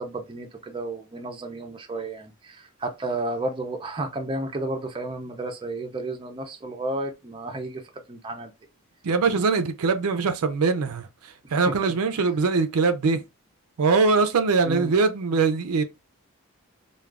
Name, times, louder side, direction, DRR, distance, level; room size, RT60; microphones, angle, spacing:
voice 1, 0.0-7.8 8.1-8.5 11.7-11.8 14.6-14.9, right 2 dB, 25° right, 0.5 m, -32 dB
voice 2, 9.0-11.1 11.5-13.2 13.8-15.8, right 4 dB, 85° right, 0.5 m, -22 dB
2.3 x 2.2 x 3.3 m
head